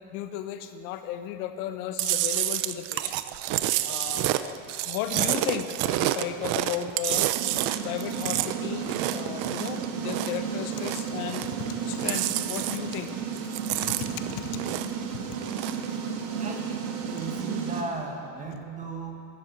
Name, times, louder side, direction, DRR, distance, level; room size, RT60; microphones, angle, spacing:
voice 1, 0.1-3.2 3.8-7.3 7.8-13.1 13.7-14.6 15.9-16.0, left 10 dB, 80° left, 9 dB, 1.2 m, -35 dB
Chewing mastication, 2.0-10.4 10.7-11.7 11.9-13.1 13.4-15.0 15.4-15.9, right 15 dB, 45° right, 0.6 m, -29 dB
sound 1, 7.3-17.8, right 6 dB, 65° right, 1.9 m, -33 dB
voice 2, 16.3-19.1, right 3 dB, 15° right, 2 dB, 1.6 m, -36 dB
12.5 x 12.5 x 7.4 m, 2.5 s
cardioid pair, 155°, 44 cm